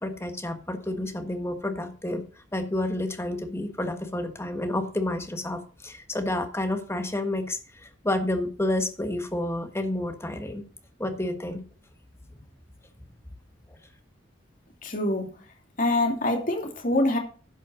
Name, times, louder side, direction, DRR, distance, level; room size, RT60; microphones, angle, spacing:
voice 1, 0.0-2.2 2.5-10.6 11.0-11.6, left 1 dB, 15° left, 7 dB, 1.4 m, -30 dB
voice 2, 14.8-15.5 15.8-17.2, left 1 dB, 45° left, 2 dB, 2.6 m, -25 dB
11.0 x 5.6 x 6.3 m, 0.38 s
head